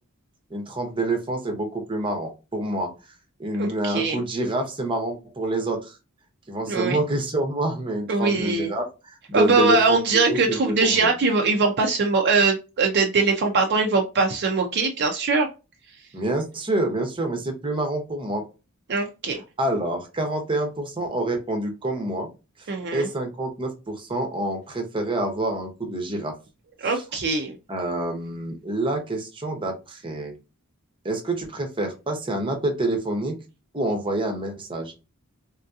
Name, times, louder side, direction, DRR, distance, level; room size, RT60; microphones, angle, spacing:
voice 1, 0.5-2.9 3.4-5.9 6.5-8.8 9.3-10.0 10.3-11.1 16.1-18.4 19.6-22.3 22.9-26.4 27.7-30.3 31.0-33.4 33.7-35.0, right 1 dB, 25° right, 3 dB, 0.8 m, -27 dB
voice 2, 3.5-4.2 6.7-7.0 8.1-8.7 9.3-15.5 18.9-19.4 22.7-23.1 26.8-27.6, right 3 dB, 50° right, 2 dB, 0.5 m, -22 dB
3.6 x 2.7 x 2.3 m, 0.28 s
head